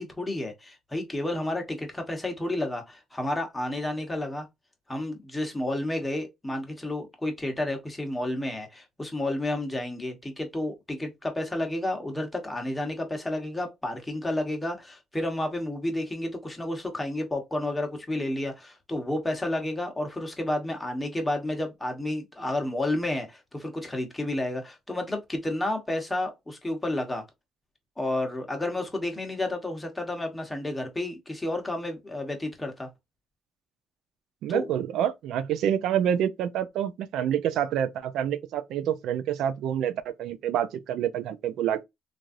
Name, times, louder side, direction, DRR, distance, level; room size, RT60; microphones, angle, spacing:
voice 1, 0.0-4.5 4.9-27.2 28.0-32.9 34.5-34.7, left 1 dB, 10° left, 1.0 m, -31 dB
voice 2, 34.4-41.8, right 9 dB, 80° right, 0.4 m, -27 dB
3.1 x 2.5 x 2.5 m
cardioid pair, 100°, 0 cm